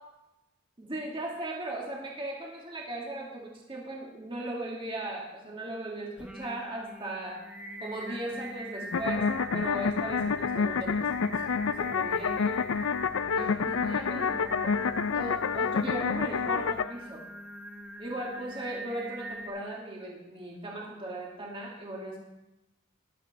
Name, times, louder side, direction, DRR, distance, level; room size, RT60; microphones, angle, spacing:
voice 1, 0.8-7.4 7.8-12.6 13.3-17.2 18.0-22.2, right 1 dB, 25° right, -3 dB, 2.0 m, -38 dB
Singing, 6.2-19.5, right 1 dB, 5° right, 1.1 m, -43 dB
sound 1, 8.9-16.8, left 5 dB, 80° left, 0.5 m, -28 dB
13.5 x 11.5 x 4.1 m, 0.95 s
head